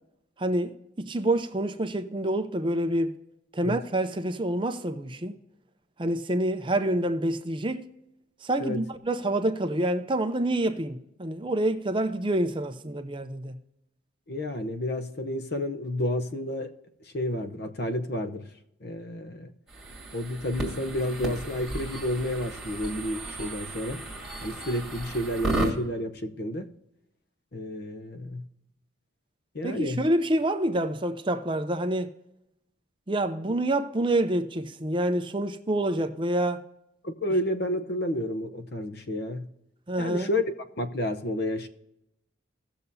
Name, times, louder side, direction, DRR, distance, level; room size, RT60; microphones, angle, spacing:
voice 1, 0.4-3.2 3.5-5.4 6.0-7.9 8.4-13.5 29.6-32.1 33.1-36.6 39.9-40.3, right 1 dB, 25° right, 0.6 m, -27 dB
voice 2, 14.3-16.7 17.1-18.4 18.8-19.5 20.1-24.0 24.4-26.7 27.5-28.4 29.5-30.0 37.0-39.5 40.0-40.4 40.8-41.7, left 1 dB, 50° left, 0.8 m, -30 dB
sound 1, 19.7-25.7, right 2 dB, ahead, 2.5 m, -34 dB
17.5 x 6.8 x 2.7 m
head